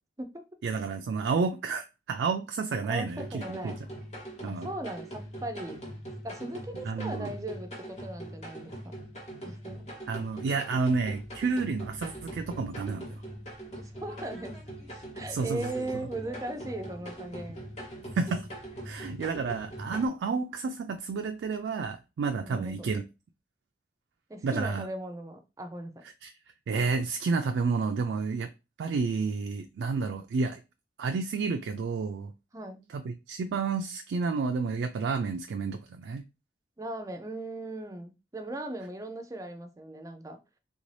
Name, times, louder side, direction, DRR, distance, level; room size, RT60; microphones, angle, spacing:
voice 1, 0.6-3.7 4.4-4.7 6.9-7.3 10.1-13.2 15.3-15.9 18.2-18.5 18.8-23.0 24.4-24.9 26.2-26.3 26.7-28.5 28.8-30.6 31.0-32.3 32.9-36.2, right 4 dB, 85° right, 0.3 m, -30 dB
voice 2, 2.9-3.8 4.5-5.8 6.2-9.0 9.4-9.9 13.8-14.6 15.1-17.6 22.4-22.9 24.3-26.0 32.5-32.8 36.8-40.4, right 1 dB, 20° right, 0.4 m, -38 dB
sound 1, 3.0-20.1, right 1 dB, 40° left, 1.0 m, -42 dB
3.5 x 2.6 x 3.2 m
head